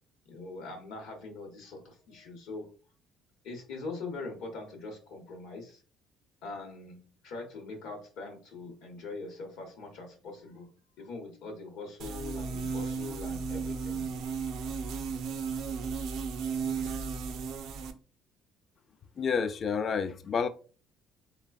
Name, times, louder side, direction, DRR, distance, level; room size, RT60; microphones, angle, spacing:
voice 1, 0.3-2.7 3.4-5.8 6.4-10.7 11.0-14.1, left 3 dB, 80° left, 0.8 m, -42 dB
sound 1, 12.0-17.9, right 5 dB, 70° right, 0.4 m, -34 dB
voice 2, 19.2-20.5, left 6 dB, 45° left, 0.3 m, -29 dB
3.3 x 2.1 x 2.3 m
supercardioid pair, 80°, 0 cm